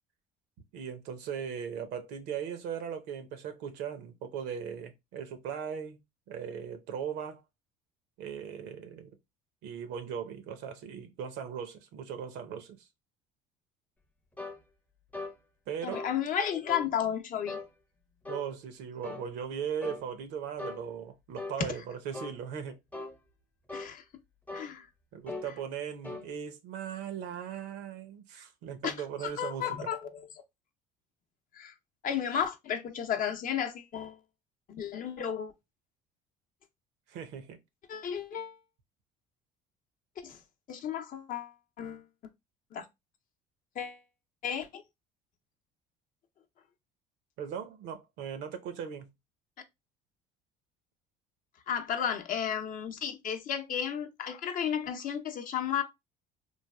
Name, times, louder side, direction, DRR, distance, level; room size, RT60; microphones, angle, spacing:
voice 1, 0.7-6.0 6.3-7.4 8.2-9.2 9.6-12.9 15.7-16.1 18.3-22.8 25.1-29.9 37.1-37.6 47.4-49.1, right 7 dB, 75° right, 0.7 m, -38 dB
sound 1, 14.4-14.6 15.1-15.4 15.9-16.2 16.7-16.9 17.5-17.7 18.3-18.5 19.0-19.3 19.8-20.0 20.6-20.8 21.4-21.6 22.1-22.4 22.9-23.2 23.7-23.9 24.5-24.7 25.3-25.5 26.0-26.3, left 2 dB, 10° left, 0.6 m, -39 dB
voice 2, 15.8-17.6 21.6-21.7 23.7-24.0 24.5-24.9 28.8-28.9 29.2-30.3 31.5-31.7 32.0-34.2 34.7-35.5 37.9-38.6 40.2-40.4 40.7-42.1 42.7-42.9 43.8-44.0 44.4-44.8 51.7-55.8, left 8 dB, 50° left, 0.6 m, -33 dB
3.2 x 2.3 x 2.2 m
supercardioid pair, 85°, 18 cm